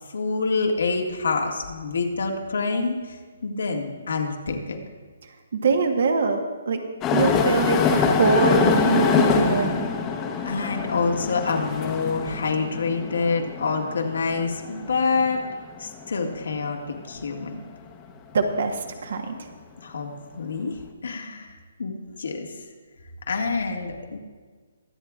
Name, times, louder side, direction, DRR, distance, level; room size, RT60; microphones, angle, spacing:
voice 1, 0.1-4.8 10.4-15.4 15.8-16.8 17.1-17.6 19.8-21.5 21.8-22.5 23.3-24.2, left 4 dB, 80° left, 2 dB, 1.8 m, -27 dB
voice 2, 5.5-6.4 6.6-6.8 7.1-9.9 18.3-19.5, right 4 dB, 65° right, 5 dB, 1.2 m, -23 dB
sound 1, 7.0-16.5 17.1-17.2 18.1-18.2, left 5 dB, 20° left, 0.9 m, -25 dB
23.0 x 7.8 x 2.4 m, 1.5 s
hypercardioid pair, 155°, 0 cm